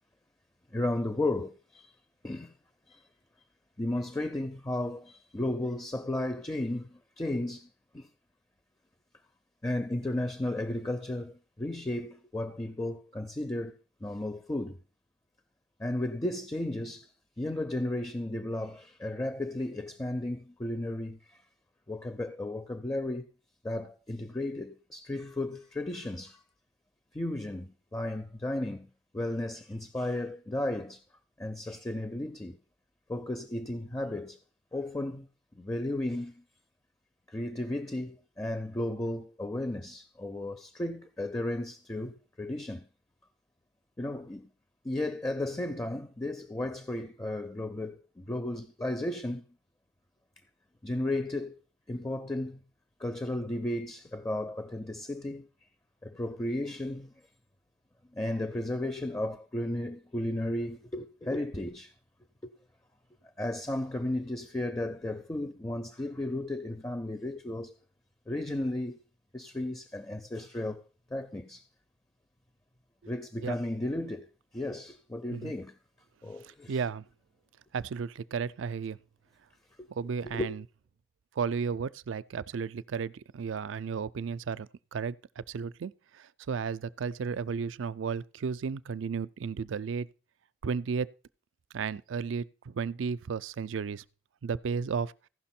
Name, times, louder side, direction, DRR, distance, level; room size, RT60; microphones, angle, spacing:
voice 1, 0.7-1.9 2.2-2.5 2.9-3.0 3.8-7.7 7.9-8.1 9.6-14.8 15.8-17.1 17.4-21.4 21.9-23.3 23.6-26.4 27.1-28.9 29.1-31.0 31.4-32.6 33.1-34.4 34.7-35.3 35.5-36.4 37.3-42.9 44.0-44.5 44.8-49.4 50.8-51.5 51.9-52.6 53.0-55.5 56.0-57.1 58.1-61.9 62.4-62.5 63.4-67.7 68.3-69.0 69.3-70.8 71.1-71.6 73.1-74.3 74.5-75.8 76.2-76.7 79.8-79.9 80.2-80.5, left 1 dB, 15° left, 0.5 m, -34 dB
voice 2, 76.4-77.0 77.7-79.0 79.9-80.6 81.4-90.1 90.6-91.1 91.7-94.0 94.4-95.1, right 6 dB, 85° right, 0.4 m, -34 dB
15.5 x 5.9 x 4.3 m
head